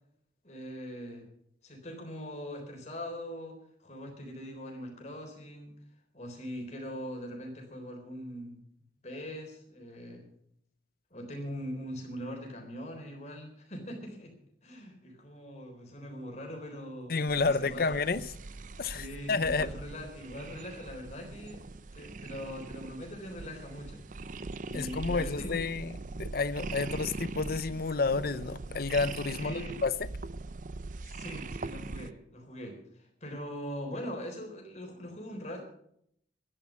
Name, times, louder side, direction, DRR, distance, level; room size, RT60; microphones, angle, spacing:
voice 1, 0.4-1.3 1.6-5.7 6.1-8.6 9.0-10.3 11.1-14.3 14.6-18.1 18.8-21.6 21.9-24.0 24.4-25.6 29.3-29.8 31.0-35.6, equal, 40° left, 3.9 m, -42 dB
voice 2, 17.1-18.3 18.8-19.7 24.7-29.9, left 4 dB, 55° left, 0.7 m, -30 dB
sound 1, 17.3-32.1, right 3 dB, 45° right, 0.5 m, -41 dB
12.5 x 10.5 x 7.3 m
head